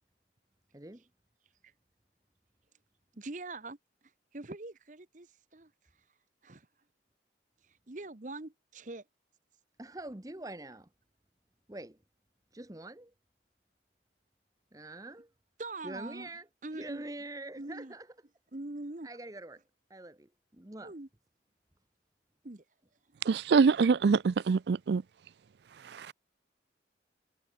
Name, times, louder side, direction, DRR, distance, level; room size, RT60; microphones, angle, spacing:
voice 1, 0.7-1.0 9.8-10.9 11.7-12.0 12.5-13.1 14.7-15.3 15.8-16.5 16.7-18.1 19.0-19.6 19.9-20.9, right 2 dB, 20° right, 1.0 m, -44 dB
voice 2, 3.2-3.8 4.3-5.7 6.4-6.7 7.6-9.0 15.6-16.3 16.6-17.0 17.6-17.9 18.5-19.1 20.8-21.1 22.4-22.6, right 2 dB, 45° right, 1.1 m, -43 dB
voice 3, 23.2-25.0 25.8-26.1, right 5 dB, 65° right, 0.4 m, -25 dB
head